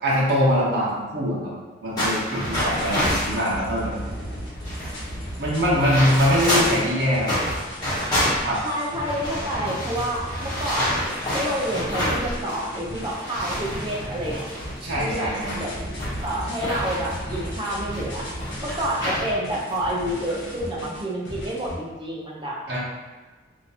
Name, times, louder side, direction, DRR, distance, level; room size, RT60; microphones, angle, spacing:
voice 1, 0.0-1.5 1.8-3.9 5.4-7.3 8.4-8.6 14.8-15.6 22.7-22.8, equal, 60° right, -7 dB, 0.9 m, -23 dB
sound 1, 2.0-3.4 4.1-4.2 4.4-6.8 7.2-12.7 13.0-18.0 18.4-19.3 19.7-19.8 20.4-20.7, equal, 20° left, 1.3 m, -28 dB
sound 2, 2.4-21.7, equal, 75° left, 1.0 m, -36 dB
voice 2, 6.2-6.7 8.6-14.5 15.0-18.2 18.6-22.8, right 1 dB, 25° right, -3 dB, 0.6 m, -29 dB
3.7 x 2.6 x 2.8 m, 1.4 s
head